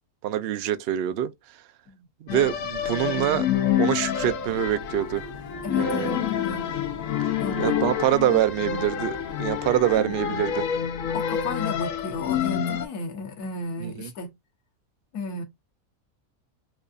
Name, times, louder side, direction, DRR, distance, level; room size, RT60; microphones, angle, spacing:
voice 1, 0.2-1.3 2.2-3.5 3.8-5.2 5.8-6.1 7.6-10.7 13.8-14.1, right 12 dB, 70° right, 0.5 m, -25 dB
sound 1, 2.3-12.9, left 9 dB, 70° left, 1.0 m, -28 dB
Car passing by / Traffic noise roadway noise / Engine, 3.0-10.3, left 2 dB, 40° left, 0.6 m, -45 dB
voice 2, 5.6-6.6 7.4-7.8 9.9-10.2 11.1-14.3 15.1-15.4, left 3 dB, 85° left, 1.5 m, -34 dB
4.6 x 2.4 x 2.5 m
omnidirectional pair, 1.6 m